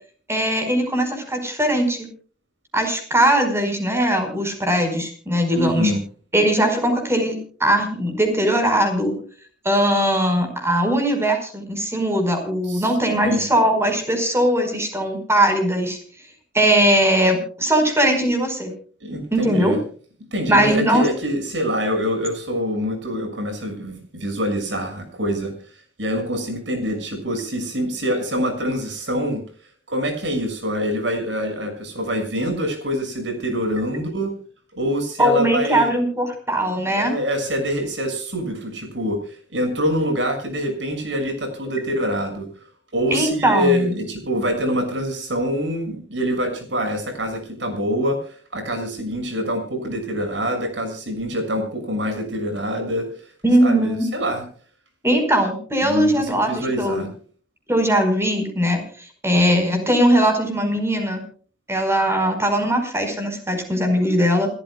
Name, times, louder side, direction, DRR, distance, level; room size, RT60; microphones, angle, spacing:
voice 1, 0.3-2.1 2.7-5.9 6.3-9.1 9.6-16.0 16.5-18.7 19.3-19.8 20.5-21.1 35.2-37.1 43.1-44.0 53.4-54.1 55.0-57.1 57.7-61.2 61.7-64.5, right 1 dB, 15° right, 6 dB, 4.9 m, -20 dB
voice 2, 5.5-6.0 12.7-12.9 13.2-13.5 19.0-19.8 20.3-25.5 26.0-29.4 29.9-34.3 34.8-36.0 36.9-42.5 42.9-53.0 53.6-54.4 55.8-57.1, equal, 75° right, 6 dB, 6.5 m, -25 dB
28.0 x 14.0 x 2.3 m, 0.43 s
head